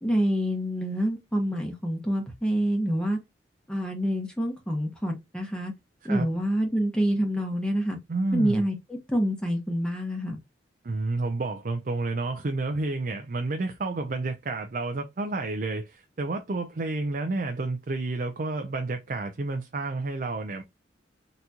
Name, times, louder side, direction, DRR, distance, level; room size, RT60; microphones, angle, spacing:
voice 1, 0.0-3.2 3.7-5.7 6.0-8.0 8.3-8.8 9.1-10.4, equal, 5° left, 1.0 m, -27 dB
voice 2, 8.1-8.6 10.8-20.6, right 2 dB, 50° right, 0.5 m, -30 dB
4.0 x 2.9 x 2.3 m
head